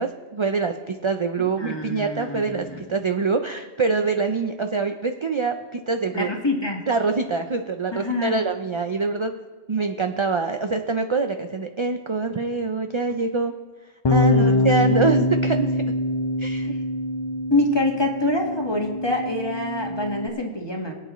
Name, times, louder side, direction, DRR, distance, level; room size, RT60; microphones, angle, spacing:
voice 1, 0.0-6.3 6.9-9.3 9.7-13.5 14.1-15.8 16.4-16.7, right 4 dB, 40° right, 6 dB, 0.4 m, -25 dB
voice 2, 1.4-2.8 6.1-6.8 7.9-8.4 14.2-15.1 16.6-16.7 17.5-20.9, left 2 dB, 25° left, 1 dB, 1.6 m, -26 dB
Bass guitar, 14.0-20.3, left 2 dB, 40° left, 0.4 m, -24 dB
23.0 x 9.0 x 3.1 m, 1.4 s
omnidirectional pair, 1.1 m